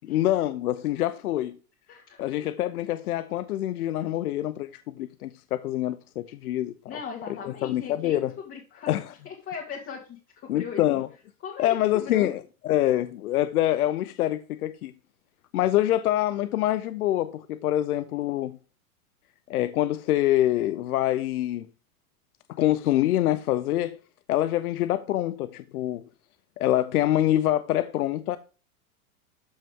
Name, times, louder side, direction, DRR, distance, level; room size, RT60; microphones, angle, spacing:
voice 1, 0.0-1.6 2.2-4.7 4.9-7.0 7.3-8.3 8.9-9.1 10.5-11.1 11.6-14.9 15.5-18.6 19.5-21.7 22.5-24.0 24.3-26.0 26.6-28.4, left 13 dB, 85° left, 0.9 m, -25 dB
voice 2, 1.9-2.2 6.9-8.9 9.3-10.8 11.4-12.3, left 6 dB, 30° left, 2.3 m, -38 dB
13.0 x 5.5 x 3.7 m
supercardioid pair, 135°, 43 cm